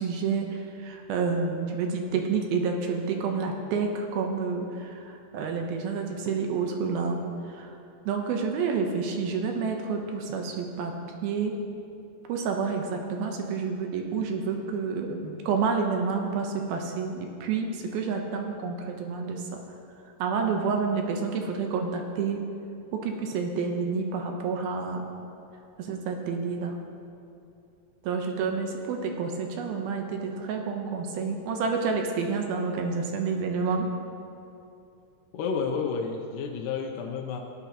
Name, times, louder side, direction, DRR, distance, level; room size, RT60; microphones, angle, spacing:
voice 1, 0.0-7.2 7.5-7.7 8.1-10.9 11.2-11.6 12.3-19.6 20.2-22.4 22.9-25.1 25.8-26.8 28.0-33.9, right 5 dB, 80° right, 3 dB, 2.6 m, -29 dB
voice 2, 35.3-37.4, left 5 dB, 80° left, 2 dB, 1.9 m, -30 dB
18.5 x 9.2 x 2.9 m, 2.7 s
omnidirectional pair, 4.6 m